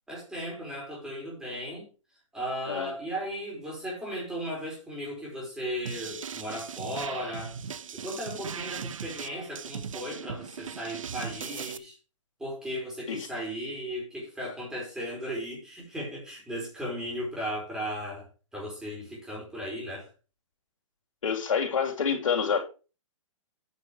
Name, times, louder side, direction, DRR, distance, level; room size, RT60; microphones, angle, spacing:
voice 1, 0.1-1.9 2.3-7.5 7.9-11.9 12.4-20.1, equal, 5° right, -4 dB, 4.9 m, -36 dB
sound 1, 5.9-11.8, right 7 dB, 80° right, 0.8 m, -39 dB
voice 2, 21.2-22.6, left 6 dB, 80° left, 2 dB, 3.2 m, -27 dB
9.6 x 6.4 x 4.9 m, 0.34 s
hypercardioid pair, 160°, 17 cm